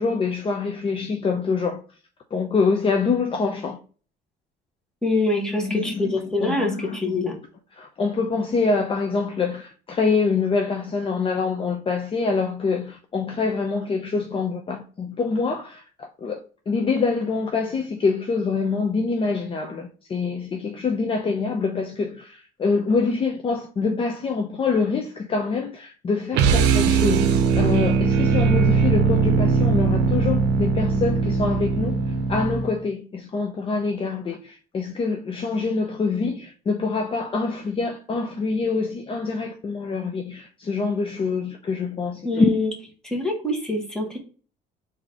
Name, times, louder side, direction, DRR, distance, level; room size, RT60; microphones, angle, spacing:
voice 1, 0.0-1.8 2.3-3.8 5.6-6.1 6.4-7.1 7.8-31.9 32.3-42.5, left 4 dB, 30° left, 0.6 m, -25 dB
voice 2, 5.0-7.4 42.2-42.7 43.0-44.2, left 2 dB, 5° left, 1.5 m, -25 dB
sound 1, 26.3-32.8, right 5 dB, 90° right, 0.6 m, -20 dB
3.9 x 2.8 x 4.8 m
cardioid pair, 110°, 17 cm